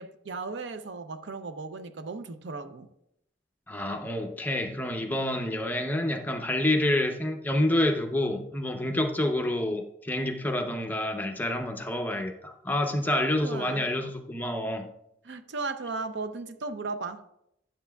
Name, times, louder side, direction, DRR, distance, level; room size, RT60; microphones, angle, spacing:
voice 1, 0.0-2.9 13.4-13.8 15.2-17.2, right 3 dB, 85° right, 0.6 m, -36 dB
voice 2, 3.7-14.9, left 1 dB, 10° left, 0.6 m, -28 dB
11.5 x 7.6 x 2.3 m
head